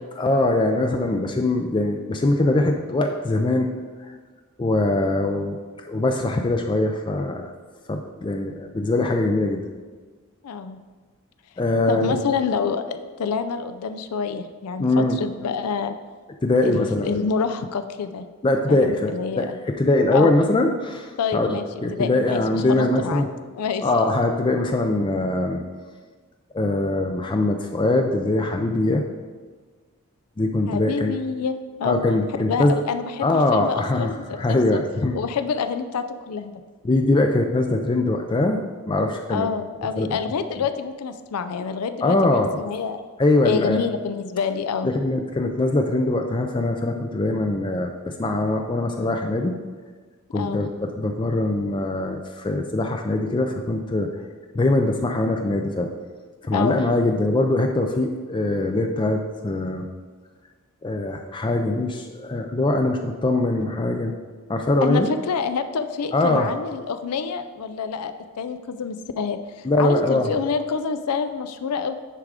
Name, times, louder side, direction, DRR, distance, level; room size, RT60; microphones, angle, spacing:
voice 1, 0.1-3.7 4.6-5.6 5.8-7.5 7.9-9.6 11.6-12.2 14.8-15.2 16.4-17.1 18.4-23.3 23.8-25.6 26.5-29.0 30.4-31.1 31.8-32.8 33.2-35.2 36.8-38.6 38.9-39.5 40.0-40.2 42.0-42.5 43.2-43.8 44.8-49.5 50.3-54.1 54.5-55.9 56.4-59.9 60.8-64.1 64.5-65.1 66.1-66.5 69.6-70.3, left 2 dB, 20° left, 4 dB, 0.3 m, -22 dB
voice 2, 10.4-10.8 11.9-15.9 16.6-18.2 18.7-19.6 20.1-20.3 21.2-21.7 21.9-23.3 23.6-23.8 30.7-31.5 31.8-32.0 32.4-34.8 35.1-36.5 39.3-42.2 42.6-43.0 43.4-44.9 50.3-50.6 56.5-56.8 64.8-72.0, left 6 dB, 85° left, 9 dB, 0.4 m, -27 dB
9.8 x 3.6 x 4.9 m, 1.4 s
head